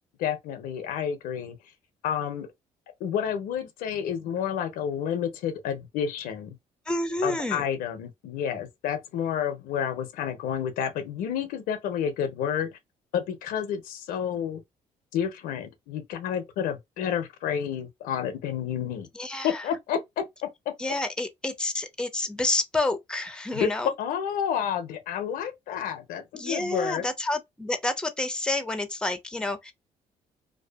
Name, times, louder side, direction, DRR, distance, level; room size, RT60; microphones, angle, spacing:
voice 1, 0.2-1.6 2.0-2.5 3.0-6.6 7.2-12.7 13.1-14.6 15.1-19.1 19.4-20.5 23.5-23.7 24.0-27.1, left 8 dB, 85° left, 0.6 m, -30 dB
voice 2, 6.9-7.6 19.1-19.7 20.8-23.9 26.3-29.7, left 2 dB, 5° left, 0.5 m, -29 dB
2.6 x 2.3 x 2.2 m
supercardioid pair, 70°, 14 cm